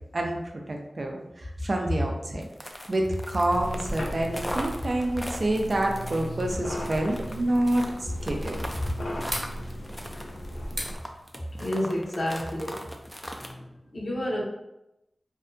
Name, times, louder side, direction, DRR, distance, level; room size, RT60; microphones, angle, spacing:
voice 1, 0.7-8.6, right 1 dB, 55° right, 2 dB, 0.4 m, -27 dB
sound 1, 2.4-13.5, equal, 10° left, 0.3 m, -39 dB
sound 2, 3.5-11.0, equal, 85° left, 0.4 m, -36 dB
sound 3, 3.9-12.3, equal, 25° right, 1.0 m, -44 dB
voice 2, 11.6-12.8 13.4-13.6 13.9-14.4, left 1 dB, 65° left, -4 dB, 0.8 m, -29 dB
2.6 x 2.2 x 2.5 m, 0.88 s
cardioid pair, 45°, 0 cm